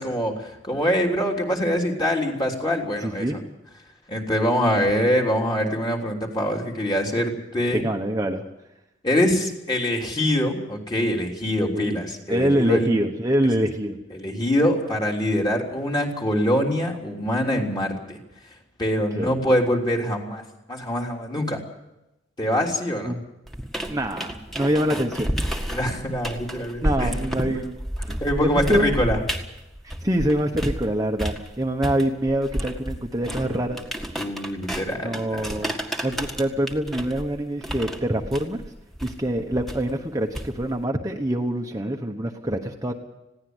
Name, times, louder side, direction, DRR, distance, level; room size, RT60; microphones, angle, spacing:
voice 1, 0.0-3.4 4.1-7.8 9.0-12.9 14.1-18.2 18.8-20.4 20.7-21.6 22.4-23.1 24.9-25.0 25.7-27.1 28.2-29.2 34.2-35.5, equal, 25° left, 0 dB, 3.5 m, -24 dB
voice 2, 3.0-3.4 7.7-8.4 11.7-11.9 12.3-14.0 19.2-19.3 23.0-23.2 23.9-25.3 26.8-27.8 28.0-29.0 30.0-33.8 35.0-38.6 39.0-42.9, right 1 dB, 20° right, 2 dB, 1.2 m, -25 dB
sound 1, 23.5-30.9 31.2-40.8, equal, ahead, 1.8 m, -31 dB
21.0 x 16.5 x 8.1 m, 0.92 s
head